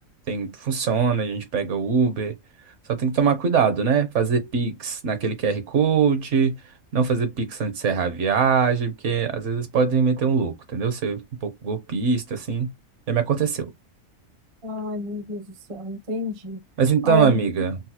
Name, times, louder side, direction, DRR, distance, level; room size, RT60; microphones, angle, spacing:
voice 1, 0.3-2.4 2.9-6.6 6.9-12.7 13.1-13.7 16.8-17.8, right 6 dB, 65° right, 1.0 m, -22 dB
voice 2, 14.6-16.6 17.0-17.4, left 2 dB, 35° right, 0.5 m, -29 dB
3.9 x 2.1 x 2.7 m
omnidirectional pair, 1.4 m